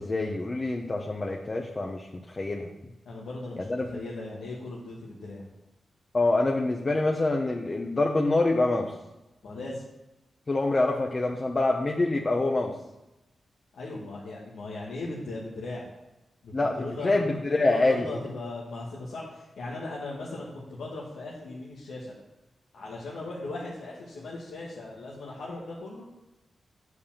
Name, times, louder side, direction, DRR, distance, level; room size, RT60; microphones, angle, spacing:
voice 1, 0.0-2.7 3.6-3.9 6.1-8.9 10.5-12.7 16.5-18.1, left 2 dB, 40° left, 1 dB, 1.0 m, -26 dB
voice 2, 3.0-5.5 9.4-9.8 13.7-15.8 16.4-22.1 22.7-26.0, left 2 dB, 85° left, -5 dB, 1.6 m, -38 dB
8.3 x 5.0 x 7.3 m, 0.99 s
cardioid pair, 55°, 0 cm